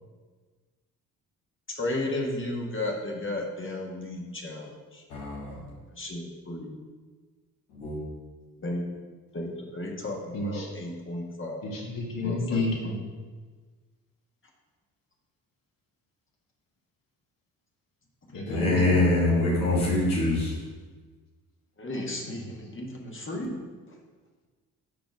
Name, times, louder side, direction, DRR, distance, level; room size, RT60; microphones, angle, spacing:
voice 1, 1.7-5.0 5.9-6.8 8.6-8.8 9.3-11.6 12.2-12.9 21.8-23.6 23.9-24.0, left 1 dB, 30° left, 0 dB, 1.4 m, -34 dB
voice 2, 5.1-5.6 7.7-8.0 18.5-20.5, left 2 dB, 90° left, -6 dB, 1.7 m, -24 dB
voice 3, 10.3-10.7 11.6-12.9 18.3-19.0 22.3-22.4, left 2 dB, 55° left, -1 dB, 1.6 m, -30 dB
5.0 x 4.4 x 5.1 m, 1.4 s
hypercardioid pair, 50°, 41 cm